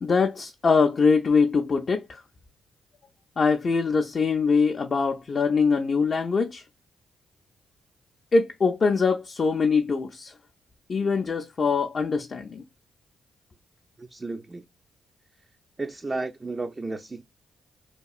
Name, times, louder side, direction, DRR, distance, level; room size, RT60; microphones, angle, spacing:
voice 1, 0.0-2.2 3.4-6.6 8.3-10.3 10.9-12.6, left 4 dB, 50° left, 0.4 m, -23 dB
voice 2, 14.0-14.7 15.8-17.2, right 3 dB, 30° right, 0.3 m, -33 dB
2.8 x 2.3 x 2.3 m
supercardioid pair, 55°, 0 cm